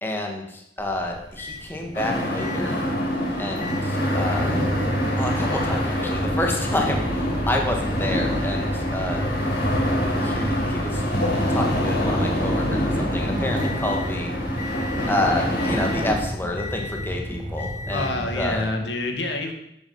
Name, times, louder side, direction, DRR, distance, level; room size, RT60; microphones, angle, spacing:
voice 1, 0.0-2.7 3.4-4.6 5.2-9.4 10.2-11.0 11.5-14.3 15.1-18.7, left 1 dB, 15° left, 1 dB, 1.7 m, -29 dB
Microwave oven, 0.8-18.7, equal, 50° left, 3.4 m, -32 dB
sound 1, 1.9-16.1, equal, 70° left, 5.6 m, -26 dB
sound 2, 4.6-18.6, equal, 15° right, 3.7 m, -33 dB
voice 2, 17.9-19.5, left 2 dB, 90° left, 4 dB, 1.9 m, -27 dB
11.5 x 8.2 x 5.5 m, 0.77 s
head